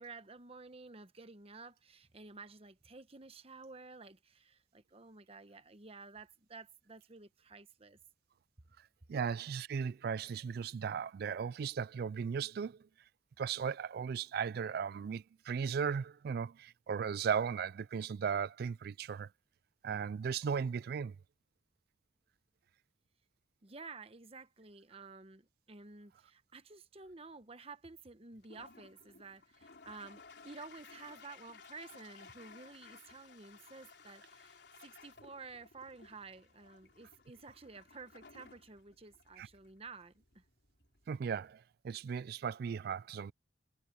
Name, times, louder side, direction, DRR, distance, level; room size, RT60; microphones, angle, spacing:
voice 1, 0.0-8.0 23.6-40.4, right 4 dB, 35° right, 1.1 m, -52 dB
voice 2, 9.1-12.9 13.4-19.3 19.8-21.2 39.4-39.5 41.1-43.3, right 6 dB, 55° right, 0.3 m, -36 dB
Toilet flush, 28.3-41.5, left 4 dB, 65° left, 4.0 m, -58 dB
head